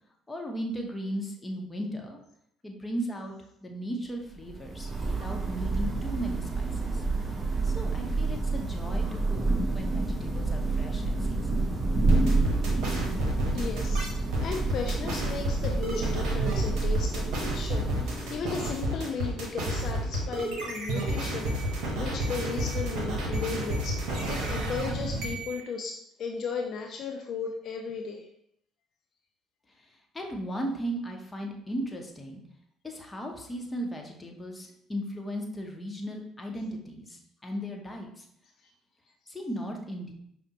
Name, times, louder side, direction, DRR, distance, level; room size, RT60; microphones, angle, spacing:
voice 1, 0.3-2.2 2.6-3.3 3.6-7.0 7.6-9.4 9.7-11.6 29.8-32.4 32.8-38.3 39.3-40.1, equal, 20° left, 2 dB, 0.8 m, -36 dB
Thunder / Rain, 4.3-18.7, right 3 dB, 30° right, 0.7 m, -29 dB
sound 1, 12.1-25.6, right 1 dB, 65° right, 0.8 m, -31 dB
voice 2, 13.5-21.5 21.9-24.0 24.3-28.3, left 5 dB, 60° left, 2 dB, 0.3 m, -35 dB
5.0 x 2.1 x 2.8 m, 0.73 s
hypercardioid pair, 60°, 0 cm